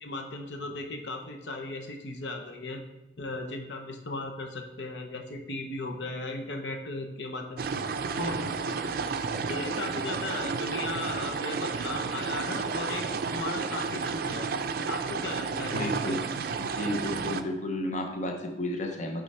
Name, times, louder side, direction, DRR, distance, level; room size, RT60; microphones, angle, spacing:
voice 1, 0.0-2.8 3.2-7.8 8.2-8.8 9.5-14.5 14.9-16.2, left 2 dB, 70° left, 3 dB, 0.7 m, -37 dB
sound 1, 7.6-17.4, right 5 dB, 55° right, 0.4 m, -32 dB
voice 2, 15.7-16.2 16.6-19.2, left 1 dB, 40° left, 3 dB, 0.7 m, -32 dB
8.7 x 3.8 x 4.3 m, 1.0 s
head